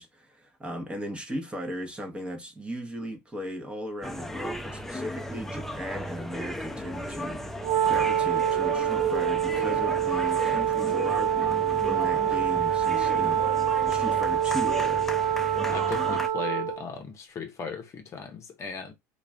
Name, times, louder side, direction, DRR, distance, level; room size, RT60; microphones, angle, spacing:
voice 1, 0.0-15.1, equal, 15° right, 0.9 m, -37 dB
sound 1, 4.0-16.3, left 1 dB, 5° left, 0.5 m, -35 dB
Wind instrument woodwind instrument, 7.6-16.8, right 9 dB, 60° right, 0.6 m, -26 dB
voice 2, 15.7-18.9, left 6 dB, 40° left, 0.7 m, -37 dB
2.4 x 2.3 x 3.2 m
supercardioid pair, 95°, 8 cm